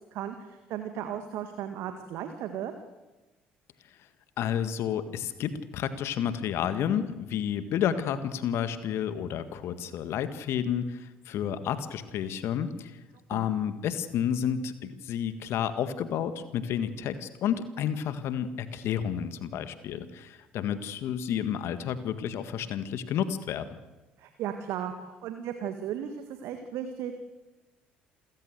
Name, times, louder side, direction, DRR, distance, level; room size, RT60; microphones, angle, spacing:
voice 1, 0.1-2.7 13.3-13.5 24.2-27.2, right 9 dB, 60° right, 7 dB, 1.8 m, -36 dB
voice 2, 4.4-13.0 13.3-23.7, left 9 dB, 60° left, 12 dB, 1.7 m, -31 dB
28.0 x 15.5 x 8.0 m, 1.1 s
figure-of-eight pair, 55°, 5 cm